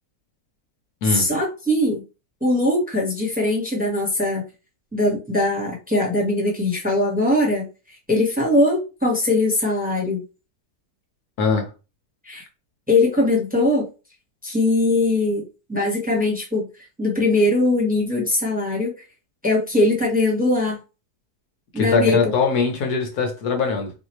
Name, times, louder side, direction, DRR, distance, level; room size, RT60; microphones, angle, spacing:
voice 1, 1.0-2.0 2.4-4.4 4.9-7.7 8.1-10.2 12.2-12.4 12.9-13.9 14.4-16.7 17.0-18.9 19.4-20.8 21.7-22.2, left 2 dB, 5° right, 1.1 m, -21 dB
voice 2, 11.4-11.7 21.8-23.9, left 5 dB, 70° left, 1.4 m, -21 dB
4.3 x 2.6 x 3.1 m
omnidirectional pair, 1.7 m